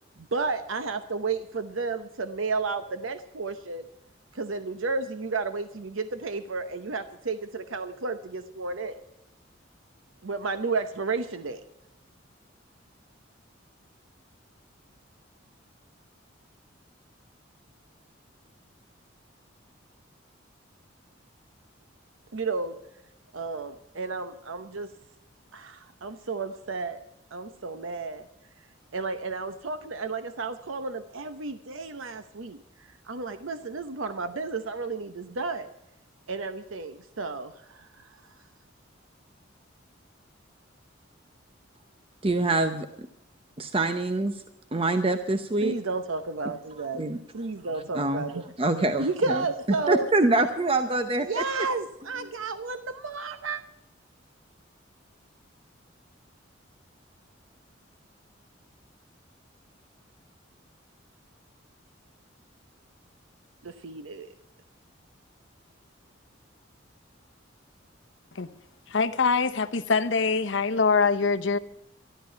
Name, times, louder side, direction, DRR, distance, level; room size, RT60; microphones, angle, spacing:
voice 1, 0.2-3.9 4.3-9.0 10.2-11.6 22.3-22.7 23.3-24.9 25.5-27.0 27.3-28.3 28.9-35.7 36.3-38.3 45.6-47.0 47.3-48.4 49.0-50.1 51.2-53.6 63.6-64.3, right 4 dB, 90° right, 0.8 m, -32 dB
voice 2, 42.2-42.9 43.6-44.4 44.7-45.7 46.9-47.2 47.9-48.2 48.6-49.4 49.9-51.4, right 2 dB, 30° right, 0.7 m, -25 dB
voice 3, 68.9-71.6, left 4 dB, 70° left, 0.9 m, -24 dB
13.0 x 12.5 x 5.7 m
head